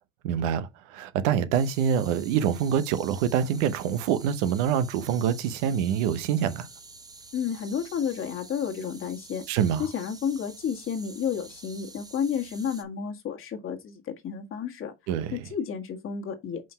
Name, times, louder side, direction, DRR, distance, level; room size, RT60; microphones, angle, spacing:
voice 1, 0.2-6.7 9.5-9.8 15.1-15.4, right 8 dB, 85° right, 0.9 m, -25 dB
sound 1, 1.5-12.8, right 3 dB, 10° right, 0.9 m, -48 dB
voice 2, 7.3-9.4 9.8-14.9 15.3-16.7, left 7 dB, 40° left, 1.7 m, -31 dB
5.2 x 3.7 x 5.6 m
cardioid pair, 125°, 33 cm